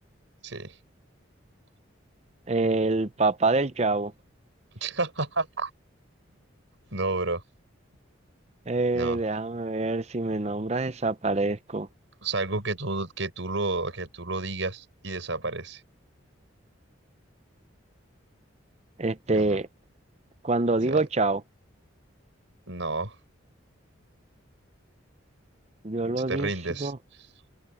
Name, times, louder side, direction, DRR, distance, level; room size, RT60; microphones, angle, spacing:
voice 1, 0.4-0.7 4.8-5.7 6.9-7.4 8.9-9.2 12.2-15.8 19.3-19.6 20.9-21.0 22.7-23.1 26.3-26.9, right 3 dB, 70° right, 4.6 m, -30 dB
voice 2, 2.5-4.1 8.7-11.9 19.0-19.7 20.4-21.4 25.8-26.5 26.8-27.0, right 3 dB, 30° right, 0.7 m, -26 dB
open air
head